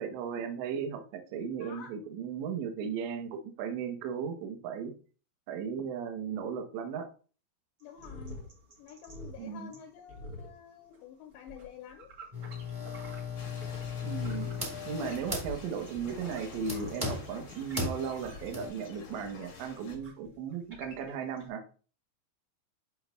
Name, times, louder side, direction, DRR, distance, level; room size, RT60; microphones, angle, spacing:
voice 1, 0.0-4.9 5.5-7.1 9.4-9.7 14.0-14.5 14.9-21.6, right 7 dB, 75° right, 5 dB, 3.0 m, -36 dB
voice 2, 1.6-1.9 7.8-8.4 8.8-12.1, left 8 dB, 80° left, 3 dB, 2.7 m, -49 dB
sound 1, 7.8-13.9 14.2-21.5, equal, 35° right, 2.4 m, -48 dB
sound 2, 12.3-18.7, left 3 dB, 15° right, 1.5 m, -38 dB
sound 3, 13.4-20.0, left 4 dB, 65° left, 1.4 m, -50 dB
13.0 x 4.7 x 2.3 m, 0.38 s
omnidirectional pair, 5.5 m